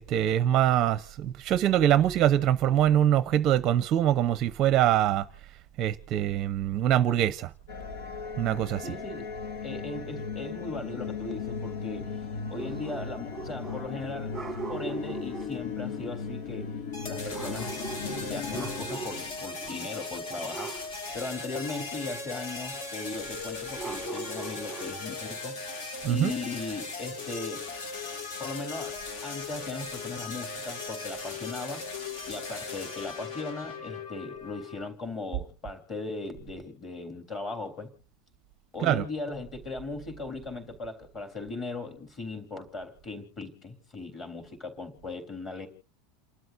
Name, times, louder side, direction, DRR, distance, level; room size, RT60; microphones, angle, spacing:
voice 1, 0.0-5.2 5.8-7.5 8.4-8.9 26.0-26.3 38.8-39.0, right 11 dB, 30° right, 0.7 m, -24 dB
sound 1, 7.7-19.7, left 6 dB, 85° left, 2.2 m, -37 dB
voice 2, 8.8-9.2 9.6-12.2 12.5-14.4 14.7-16.7 17.0-17.7 18.2-25.6 26.0-27.7 28.4-31.9 32.3-37.9 38.7-45.7, left 3 dB, 20° left, 3.5 m, -38 dB
sound 2, 12.6-14.0 14.3-15.6 17.3-19.3 19.6-19.9 20.5-20.9 23.8-25.1, right 5 dB, 5° right, 1.4 m, -40 dB
sound 3, 16.9-34.9, left 3 dB, 55° left, 2.6 m, -38 dB
29.5 x 12.5 x 2.6 m
supercardioid pair, 175°, 0 cm